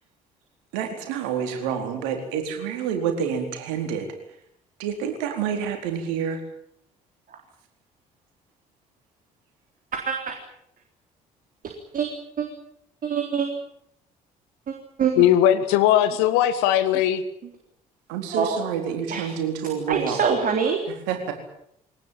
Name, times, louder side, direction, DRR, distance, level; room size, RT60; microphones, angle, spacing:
voice 1, 0.7-4.1 4.8-6.4 18.1-20.2 20.9-21.3, right 7 dB, 70° right, 5 dB, 4.2 m, -28 dB
voice 2, 13.1-13.5 15.0-15.1 18.3-18.6 19.1-19.2 19.9-20.8, right 6 dB, 45° right, 3 dB, 3.8 m, -23 dB
voice 3, 15.2-17.2, left 12 dB, 70° left, 12 dB, 1.8 m, -19 dB
23.0 x 19.0 x 9.1 m, 0.74 s
figure-of-eight pair, 50°, 19 cm